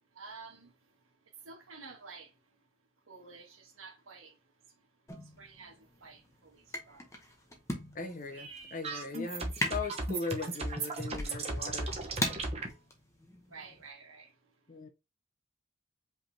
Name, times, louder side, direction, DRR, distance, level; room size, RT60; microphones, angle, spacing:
voice 1, 0.1-0.7 1.4-2.3 3.1-4.4 5.4-7.0 13.5-14.3, right 4 dB, 80° right, 1.6 m, -50 dB
sound 1, 5.1-13.9, left 1 dB, 15° left, 0.8 m, -41 dB
voice 2, 7.9-11.9 14.7-14.9, left 3 dB, 40° left, 0.7 m, -39 dB
sound 2, 8.3-12.7, right 2 dB, 30° right, 0.9 m, -36 dB
5.2 x 3.3 x 2.7 m
head